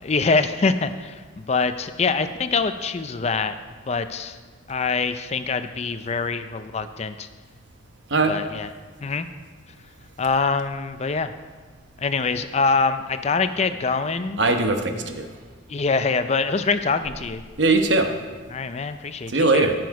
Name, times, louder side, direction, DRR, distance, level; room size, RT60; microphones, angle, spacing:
voice 1, 0.0-3.6 3.9-4.4 4.7-7.3 8.2-8.7 9.0-9.3 10.2-11.3 12.0-14.4 15.7-17.4 18.5-19.7, left 4 dB, 35° left, 10 dB, 0.4 m, -24 dB
voice 2, 14.4-15.3 17.6-18.1 19.3-19.7, right 3 dB, 70° right, 5 dB, 1.0 m, -20 dB
14.0 x 6.1 x 4.7 m, 1.4 s
head